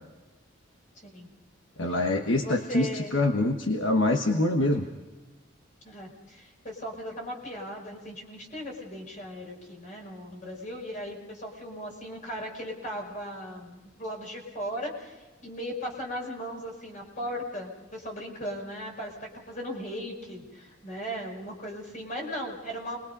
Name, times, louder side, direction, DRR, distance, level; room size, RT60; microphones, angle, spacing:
voice 1, 1.8-4.9, left 2 dB, 65° left, 4 dB, 1.3 m, -25 dB
voice 2, 2.3-3.1 5.8-23.0, equal, 40° left, 0 dB, 5.1 m, -37 dB
28.5 x 21.5 x 5.4 m, 1.1 s
head